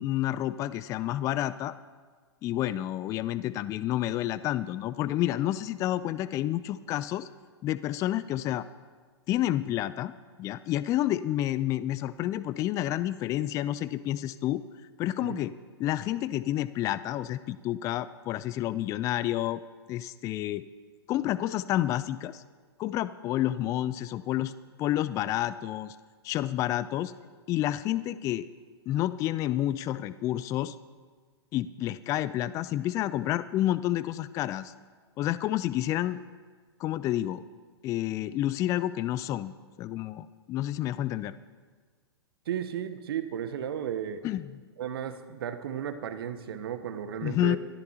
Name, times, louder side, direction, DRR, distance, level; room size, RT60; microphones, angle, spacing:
voice 1, 0.0-1.7 2.4-7.3 7.6-8.7 9.3-10.1 10.4-14.6 15.0-15.5 15.8-19.6 19.9-20.6 21.1-22.4 22.8-24.5 24.8-26.0 26.2-27.1 27.5-28.4 28.9-30.8 31.5-34.7 35.2-36.2 36.8-37.4 37.8-39.5 39.8-41.3 44.2-44.4 47.2-47.6, left 13 dB, 25° left, 16 dB, 0.3 m, -29 dB
voice 2, 42.5-44.2 44.8-47.6, right 9 dB, 60° right, 10 dB, 1.0 m, -34 dB
22.5 x 13.0 x 2.9 m, 1.5 s
figure-of-eight pair, 110°, 14 cm